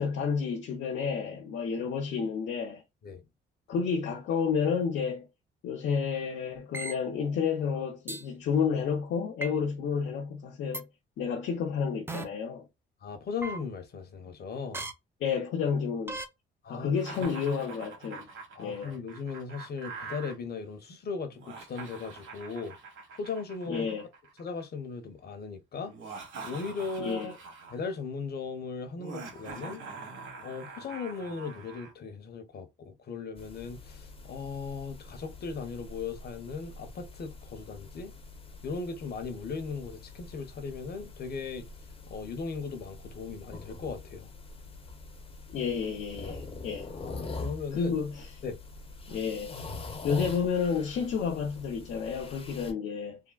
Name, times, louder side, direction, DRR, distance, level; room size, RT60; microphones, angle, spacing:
voice 1, 0.0-2.8 3.7-5.3 5.6-10.9 11.2-12.6 15.2-16.2 16.7-18.3 18.6-18.9 23.7-24.1 27.0-27.3 45.5-46.9 47.7-48.3 49.1-49.6 50.0-53.2, left 6 dB, 75° left, 0.8 m, -30 dB
sound 1, 6.7-6.9 8.1-8.2 9.4-9.5 10.7-10.8 12.1-12.2 13.4-13.6 14.7-14.9 16.1-16.2, right 2 dB, 10° right, 0.6 m, -35 dB
voice 2, 13.0-14.9 16.6-17.3 18.5-22.8 23.1-23.9 24.4-27.3 27.7-29.9 30.4-38.1 38.6-41.7 42.1-44.3 46.9-47.9 48.4-48.6, left 5 dB, 55° left, 1.1 m, -38 dB
Laughter, 16.9-20.3 21.3-24.6 25.9-27.9 29.0-31.9, right 4 dB, 75° right, 1.5 m, -44 dB
sound 2, 33.4-52.7, left 3 dB, 30° left, 0.8 m, -44 dB
3.7 x 2.1 x 2.3 m
cardioid pair, 90°, 20 cm